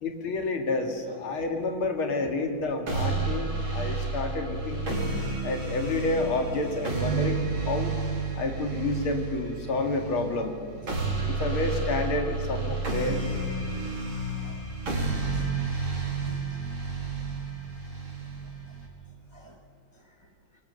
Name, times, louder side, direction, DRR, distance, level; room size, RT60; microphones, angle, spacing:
voice 1, 0.0-5.0 5.4-7.9 8.4-10.6 11.2-13.2, left 3 dB, 85° left, 4 dB, 3.2 m, -29 dB
sound 1, 2.9-18.9, right 3 dB, 75° right, 4.9 m, -31 dB
voice 2, 15.0-15.5 15.8-15.9 16.2-16.6 19.3-19.6 19.9-20.3, right 2 dB, 15° right, 3 dB, 1.2 m, -53 dB
27.0 x 22.5 x 6.9 m, 2.1 s
omnidirectional pair, 2.2 m